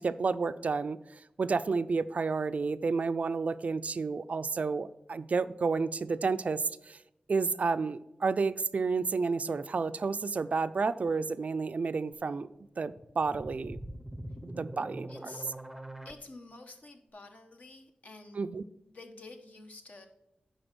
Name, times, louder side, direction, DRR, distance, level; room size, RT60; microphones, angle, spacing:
voice 1, 0.0-7.0 7.3-12.5 12.8-13.8 14.4-15.1 18.4-18.6, right 4 dB, 60° right, 13 dB, 0.4 m, -31 dB
sound 1, 12.9-16.1, right 1 dB, 5° right, 0.6 m, -43 dB
voice 2, 15.1-15.5 16.0-18.4 18.8-20.1, left 2 dB, 60° left, 4 dB, 1.2 m, -49 dB
10.5 x 3.9 x 6.1 m, 0.90 s
wide cardioid pair, 100°, 3 cm